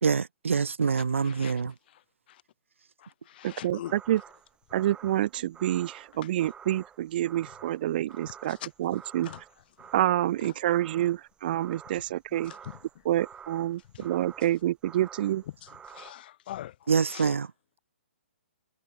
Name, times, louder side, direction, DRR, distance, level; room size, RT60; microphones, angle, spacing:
voice 1, 0.0-1.7 16.9-17.5, right 5 dB, 80° right, 1.3 m, -25 dB
voice 2, 0.9-2.4 3.0-3.9 8.5-8.7 9.2-9.4 9.8-10.0 10.4-10.5 12.3-12.8 13.9-14.1 15.6-17.4, left 12 dB, 50° left, 5.9 m, -44 dB
voice 3, 3.4-4.2 4.7-9.3 9.9-12.5 13.1-15.4, right 13 dB, 45° right, 1.9 m, -28 dB
sound 1, 3.8-16.1, right 7 dB, 15° right, 5.6 m, -50 dB
hypercardioid pair, 135°, 7 cm